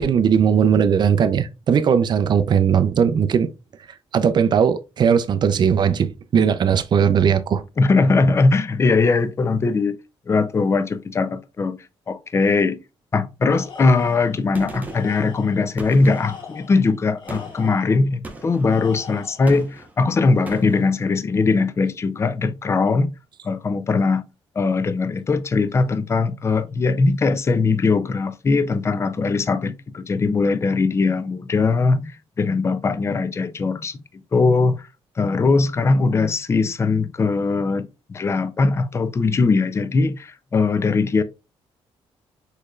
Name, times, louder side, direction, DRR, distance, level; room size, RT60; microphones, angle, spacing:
voice 1, 0.0-3.5 4.1-7.6, right 7 dB, 45° right, 0.5 m, -18 dB
voice 2, 7.8-10.0 10.3-11.8 12.1-12.8 13.1-23.1 23.4-24.2 24.6-34.0 34.3-34.9 35.2-41.2, left 4 dB, 25° left, 0.5 m, -20 dB
Tools, 13.5-14.4 14.8-15.7 16.0-18.0 18.6-19.6, left 6 dB, 50° left, 1.1 m, -42 dB
Gunshot gunfire, 14.5-15.2 15.8-16.5 17.3-17.7 18.2-18.7 19.5-20.0 20.5-20.9, right 2 dB, 15° right, 0.9 m, -37 dB
6.5 x 3.2 x 2.4 m
cardioid pair, 140°, 10 cm